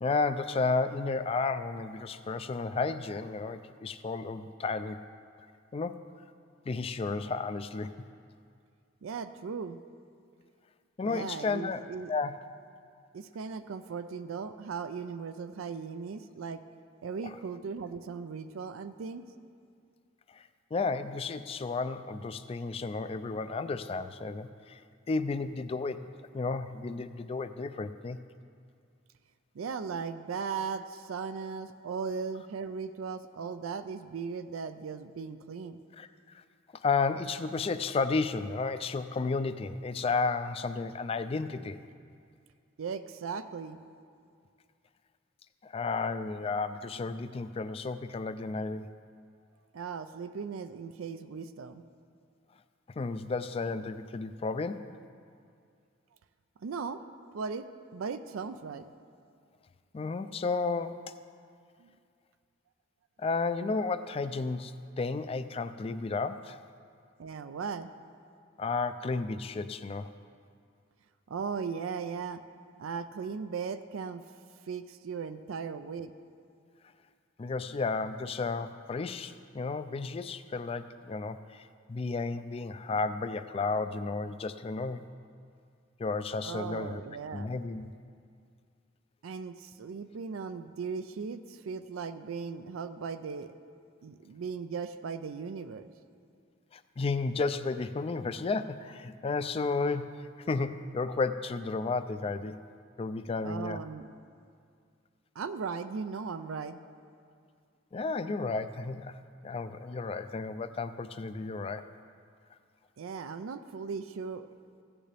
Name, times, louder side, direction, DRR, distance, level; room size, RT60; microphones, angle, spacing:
voice 1, 0.0-5.0 5.7-6.0 6.7-7.9 11.0-11.8 12.1-12.4 17.2-17.4 20.3-20.4 20.7-24.8 25.1-28.2 36.0-36.4 36.8-41.8 45.6-48.9 53.0-55.0 59.9-61.1 63.2-66.6 68.6-70.1 77.4-85.1 86.0-87.0 87.3-87.9 96.7-102.6 103.0-103.8 107.9-109.2 109.4-111.9, left 4 dB, 30° left, 11 dB, 0.3 m, -32 dB
voice 2, 9.0-9.8 11.0-12.1 13.1-16.6 17.0-19.2 29.5-35.8 42.8-43.8 49.7-51.8 56.6-57.0 57.3-58.8 61.8-61.9 67.2-67.9 71.3-72.4 72.8-74.2 74.7-76.1 86.4-87.5 89.2-93.5 94.0-95.9 103.4-104.1 105.4-106.8 113.0-114.5, right 5 dB, 90° right, 10 dB, 0.4 m, -37 dB
15.5 x 8.8 x 3.4 m, 2.3 s
head